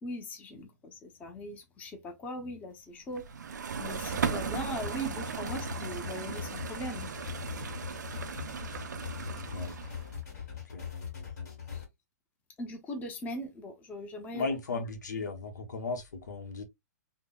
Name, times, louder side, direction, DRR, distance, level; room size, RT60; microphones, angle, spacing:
voice 1, 0.0-3.3 3.8-7.1 12.6-14.5, equal, 15° left, 0.6 m, -40 dB
sound 1, 3.2-10.2, right 6 dB, 85° right, 0.5 m, -37 dB
sound 2, 4.8-11.8, left 7 dB, 65° left, 1.7 m, -41 dB
voice 2, 14.3-16.6, left 3 dB, 85° left, 0.8 m, -35 dB
3.5 x 2.0 x 2.2 m
hypercardioid pair, 140°, 9 cm